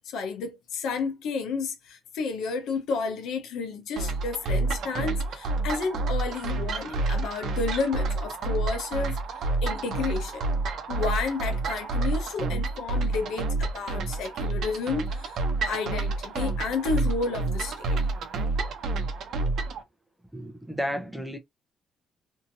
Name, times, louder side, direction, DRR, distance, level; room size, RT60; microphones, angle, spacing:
voice 1, 0.0-9.2 9.6-10.4 10.9-18.0, left 4 dB, 85° left, 0.9 m, -31 dB
sound 1, 4.0-19.8, right 3 dB, 70° right, 0.7 m, -29 dB
voice 2, 20.3-21.4, equal, 5° right, 0.7 m, -32 dB
2.9 x 2.7 x 2.6 m
cardioid pair, 90°, 0 cm